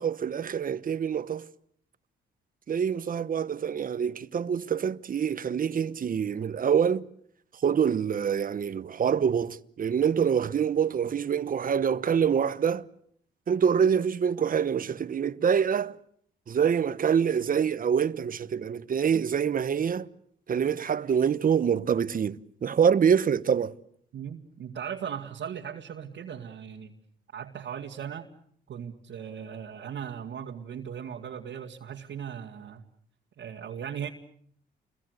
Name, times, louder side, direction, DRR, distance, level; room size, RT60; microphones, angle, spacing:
voice 1, 0.0-1.5 2.7-7.1 7.6-12.9 13.5-16.0 16.5-20.1 20.5-23.7, right 7 dB, 45° right, 1.1 m, -25 dB
voice 2, 24.1-26.9 27.3-28.3 28.7-32.9 33.4-34.1, right 8 dB, 65° right, 2.1 m, -38 dB
29.0 x 22.5 x 8.0 m
cardioid pair, 90°, 20 cm